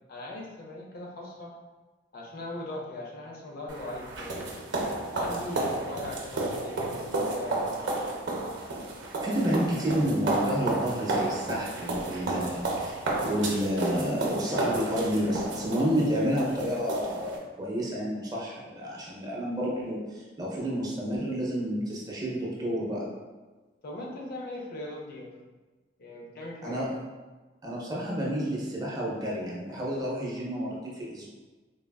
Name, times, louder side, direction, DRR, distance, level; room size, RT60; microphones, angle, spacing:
voice 1, 0.1-1.6 2.1-4.4 5.1-7.7 23.8-25.4 26.0-26.8, left 1 dB, 55° left, -2 dB, 0.5 m, -39 dB
sound 1, 3.7-17.4, right 2 dB, 75° right, 0.5 m, -32 dB
voice 2, 9.2-23.1 26.6-27.0 27.6-31.3, equal, 20° right, -5 dB, 0.5 m, -30 dB
3.3 x 2.3 x 2.2 m, 1.3 s
head